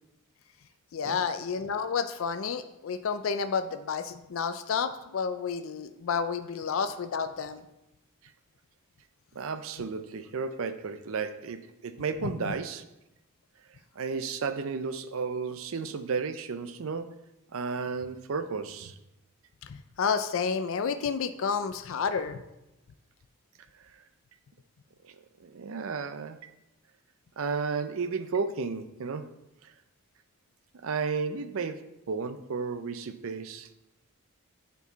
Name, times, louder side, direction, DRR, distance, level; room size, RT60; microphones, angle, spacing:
voice 1, 0.9-7.6 12.2-12.5 19.7-22.4, left 6 dB, 65° left, 10 dB, 0.4 m, -30 dB
voice 2, 9.4-12.8 14.0-17.2 17.5-19.0 25.1-26.4 27.4-29.3 29.6-29.7 30.8-33.7, right 5 dB, 65° right, 11 dB, 0.5 m, -33 dB
8.2 x 4.6 x 4.0 m, 0.93 s
head